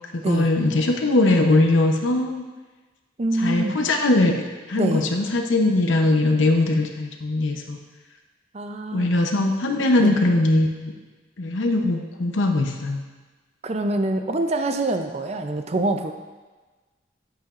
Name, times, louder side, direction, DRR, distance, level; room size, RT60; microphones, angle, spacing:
voice 1, 0.1-2.4 3.4-4.4 4.7-7.8 8.9-10.9 11.4-13.0, left 2 dB, 90° left, 3 dB, 0.8 m, -20 dB
voice 2, 3.2-3.8 4.8-5.0 8.5-9.1 10.0-10.2 13.6-16.1, right 2 dB, 35° right, 6 dB, 0.5 m, -25 dB
9.1 x 8.3 x 2.5 m, 1.3 s
head